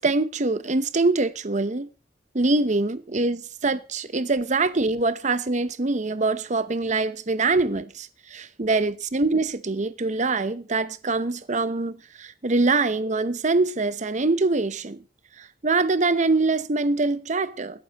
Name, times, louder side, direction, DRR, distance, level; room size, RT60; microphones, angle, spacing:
voice 1, 0.0-1.9 2.3-15.0 15.4-17.8, right 3 dB, 40° right, 0.8 m, -24 dB
21.5 x 11.5 x 3.0 m
head